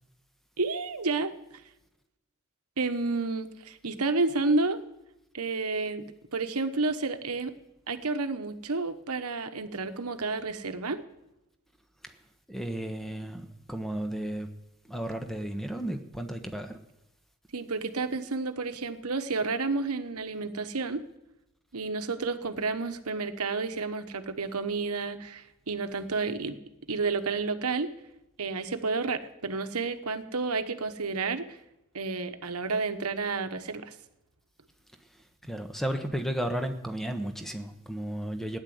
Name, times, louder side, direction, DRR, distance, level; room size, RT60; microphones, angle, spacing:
voice 1, 0.6-1.3 2.8-4.8 5.3-6.0 6.3-7.5 7.9-11.0 17.5-21.0 21.7-26.6 26.9-27.9 28.4-31.6 31.9-33.9, right 3 dB, 80° right, 9 dB, 1.2 m, -30 dB
voice 2, 12.5-14.5 14.9-16.8 35.5-38.6, right 1 dB, ahead, 6 dB, 1.2 m, -33 dB
16.0 x 10.5 x 7.9 m, 0.91 s
head